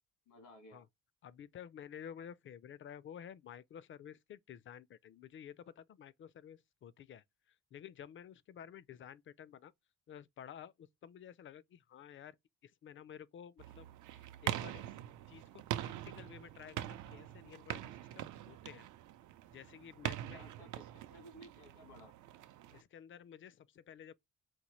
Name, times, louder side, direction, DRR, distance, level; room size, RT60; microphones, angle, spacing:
voice 1, 0.3-0.9 20.3-22.1, left 1 dB, 85° left, 1.5 m, -57 dB
voice 2, 1.2-7.2 7.7-9.7 10.1-12.3 12.6-13.9 14.4-14.9 15.3-17.9 18.2-18.9 19.5-20.4 21.1-21.2 22.7-24.1, left 9 dB, 40° left, 0.4 m, -52 dB
sound 1, 13.6-22.8, right 12 dB, 80° right, 0.6 m, -43 dB
4.3 x 2.1 x 3.0 m
cardioid pair, 90°, 30 cm